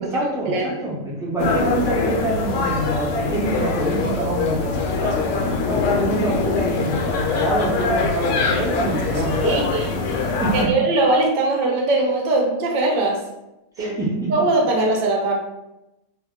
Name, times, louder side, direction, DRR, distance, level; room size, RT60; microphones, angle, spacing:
voice 1, 0.0-5.3 5.7-9.7 10.2-10.8 13.8-14.4, right 1 dB, 5° right, -7 dB, 0.3 m, -26 dB
sound 1, 1.4-10.6, left 4 dB, 75° left, 0.9 m, -23 dB
voice 2, 9.4-10.0 10.5-13.2 13.8-14.0 14.3-15.3, right 2 dB, 55° right, 0 dB, 0.7 m, -20 dB
2.2 x 2.2 x 3.5 m, 0.92 s
omnidirectional pair, 1.3 m